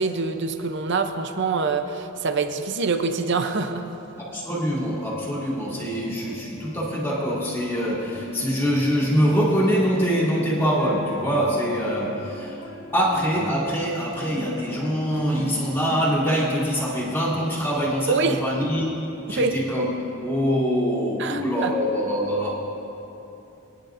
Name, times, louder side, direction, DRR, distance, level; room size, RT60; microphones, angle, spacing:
voice 1, 0.0-3.8 18.1-18.4 19.3-19.6 21.2-21.7, right 4 dB, 55° right, 7 dB, 0.6 m, -25 dB
voice 2, 4.1-12.6 12.9-18.8 19.3-19.9 20.2-22.6, equal, 10° left, -6 dB, 2.6 m, -24 dB
sound 1, 5.7-18.4, left 1 dB, 50° left, 1.0 m, -41 dB
23.5 x 10.0 x 2.6 m, 3.0 s
head